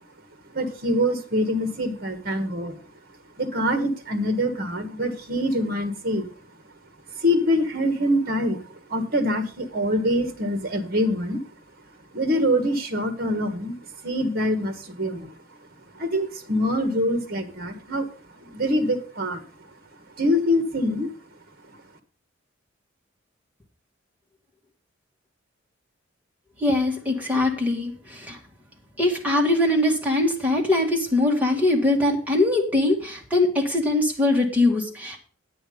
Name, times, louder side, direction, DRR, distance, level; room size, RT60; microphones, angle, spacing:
voice 1, 0.5-2.8 3.4-6.3 7.1-11.4 12.1-15.3 15.9-18.1 18.4-19.4 20.2-21.1 21.7-21.8, equal, 50° right, 8 dB, 1.4 m, -25 dB
voice 2, 26.6-28.4 29.0-35.2, left 2 dB, 10° right, -1 dB, 2.1 m, -22 dB
9.6 x 8.6 x 5.2 m, 0.39 s
head